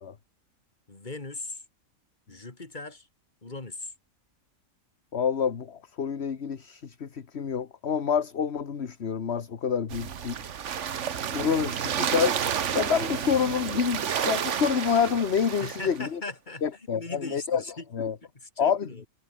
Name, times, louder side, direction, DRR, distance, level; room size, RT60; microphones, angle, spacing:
voice 1, 0.9-1.6 2.3-3.1 3.4-3.9 15.6-17.9 18.2-19.0, left 3 dB, 30° left, 2.8 m, -39 dB
voice 2, 5.1-10.4 11.3-16.2 16.6-17.6 17.9-18.1 18.6-18.9, left 7 dB, 50° left, 1.5 m, -27 dB
sound 1, 9.9-16.0, right 8 dB, 60° right, 1.3 m, -30 dB
omnidirectional pair, 1.5 m